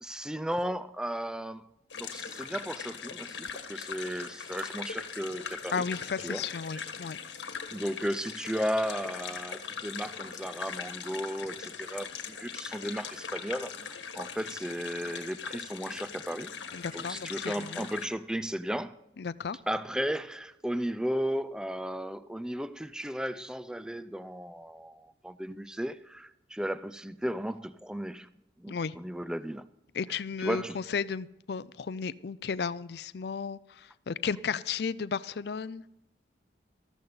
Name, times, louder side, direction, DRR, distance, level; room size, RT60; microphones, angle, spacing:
voice 1, 0.0-1.6 2.0-5.8 6.2-6.4 6.7-6.8 7.7-16.5 16.9-18.9 19.7-28.3 28.6-29.6 30.4-30.8, equal, 5° right, 0.4 m, -35 dB
sound 1, 1.9-18.1, left 6 dB, 85° left, 1.5 m, -40 dB
voice 2, 5.7-7.2 16.7-17.9 19.2-19.6 28.7-29.0 29.9-35.8, left 6 dB, 60° left, 0.4 m, -34 dB
14.0 x 13.0 x 4.0 m
head